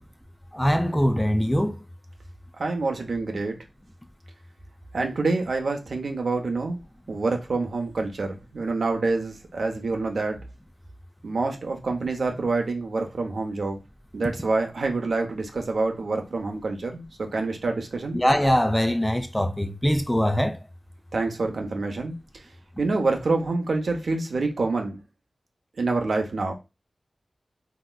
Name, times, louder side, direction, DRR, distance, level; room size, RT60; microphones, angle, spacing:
voice 1, 0.5-1.8 18.1-20.6, equal, 10° left, 0.4 m, -22 dB
voice 2, 2.6-3.6 4.9-6.8 7.1-10.4 11.2-13.8 14.1-18.2 21.1-22.4 22.8-25.0 25.8-26.5, right 3 dB, 80° right, 0.6 m, -27 dB
3.1 x 2.8 x 2.2 m
wide cardioid pair, 65°, 0 cm